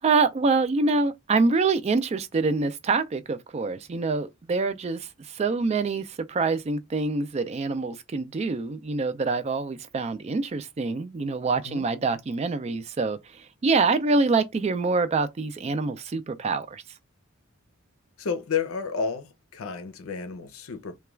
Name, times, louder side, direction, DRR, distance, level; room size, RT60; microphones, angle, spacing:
voice 1, 0.0-16.8, right 4 dB, 30° right, 0.3 m, -25 dB
voice 2, 18.2-21.0, left 6 dB, 80° left, 0.6 m, -31 dB
2.3 x 2.2 x 3.1 m
head